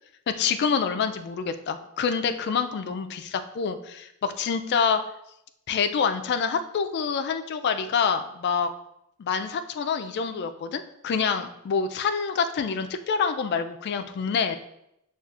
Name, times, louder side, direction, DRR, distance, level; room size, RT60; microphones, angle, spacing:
voice 1, 0.4-5.0 5.7-8.7 9.2-14.6, left 6 dB, 50° left, 8 dB, 0.3 m, -26 dB
6.5 x 2.4 x 2.4 m, 0.80 s
head